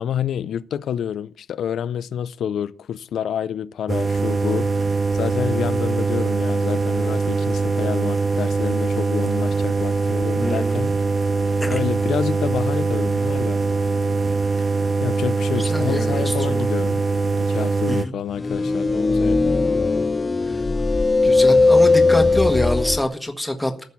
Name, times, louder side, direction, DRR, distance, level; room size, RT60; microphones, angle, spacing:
voice 1, 0.0-4.8 5.1-10.9 11.7-13.6 15.0-17.0 17.4-19.7, left 9 dB, 80° left, 0.5 m, -28 dB
sound 1, 3.9-18.1, right 4 dB, 25° right, 0.7 m, -22 dB
voice 2, 10.4-10.9 11.6-11.8 15.6-16.7 17.9-18.1 20.5-20.6 21.2-23.7, left 1 dB, 5° left, 1.6 m, -25 dB
sound 2, 18.4-23.0, left 3 dB, 20° left, 0.5 m, -18 dB
14.5 x 6.4 x 7.2 m
wide cardioid pair, 160°, 0 cm